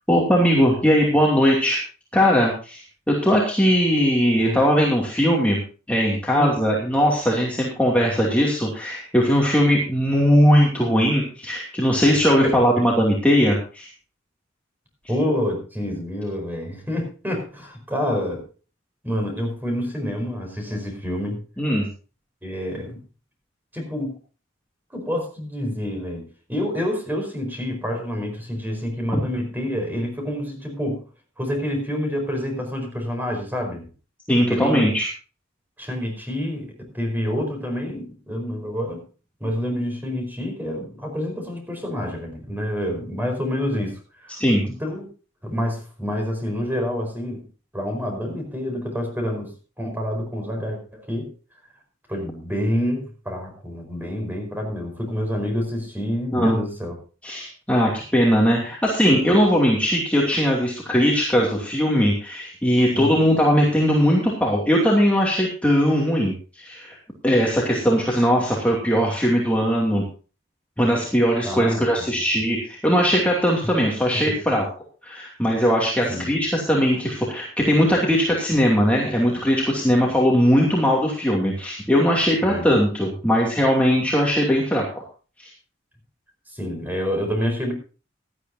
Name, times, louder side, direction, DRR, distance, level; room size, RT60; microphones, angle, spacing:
voice 1, 0.1-1.8 2.1-5.6 5.9-13.9 21.6-21.9 34.3-35.1 44.4-44.7 56.3-56.6 57.2-67.0 67.2-70.0 70.8-74.6 75.0-85.0 85.4-85.5, equal, 5° left, -3 dB, 2.7 m, -19 dB
voice 2, 15.1-18.4 19.0-21.4 22.4-23.0 23.7-24.2 24.9-31.0 31.4-33.8 34.5-34.9 35.8-39.0 39.4-44.4 44.7-45.1 45.4-47.4 47.7-49.5 49.8-51.3 52.1-56.9 62.9-63.2 71.4-72.1 74.1-74.4 76.1-76.3 82.4-82.7 86.5-87.7, equal, 10° right, 3 dB, 4.8 m, -27 dB
17.5 x 12.0 x 2.8 m, 0.35 s
head